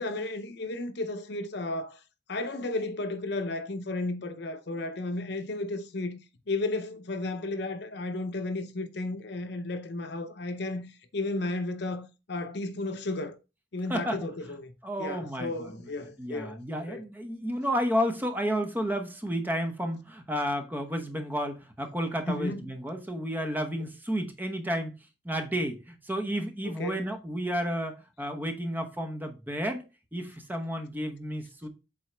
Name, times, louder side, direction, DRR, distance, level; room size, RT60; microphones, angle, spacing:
voice 1, 0.0-2.0 2.3-6.2 6.5-13.4 13.7-14.7 15.0-16.6 16.9-17.0 22.3-22.6 26.6-27.1, left 2 dB, 60° left, 0.7 m, -33 dB
voice 2, 13.9-14.3 14.8-15.9 16.2-24.9 25.2-29.8 30.1-31.7, equal, 10° right, 0.8 m, -31 dB
7.8 x 3.9 x 3.3 m
head